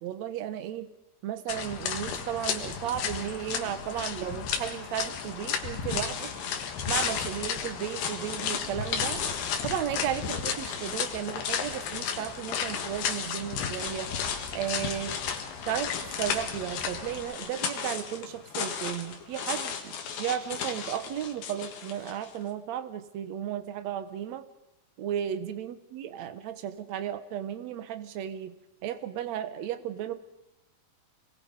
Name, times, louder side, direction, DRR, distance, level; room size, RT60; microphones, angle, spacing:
voice 1, 0.0-0.9 1.2-6.3 6.9-9.2 9.6-14.1 14.5-15.1 15.7-24.4 25.0-28.5 28.8-30.1, right 10 dB, 70° right, 11 dB, 1.7 m, -34 dB
sound 1, 1.5-17.3, left 7 dB, 90° left, 3.7 m, -34 dB
sound 2, 5.2-22.4, left 7 dB, 65° left, 3.5 m, -37 dB
27.5 x 21.0 x 5.2 m, 0.92 s
omnidirectional pair, 4.6 m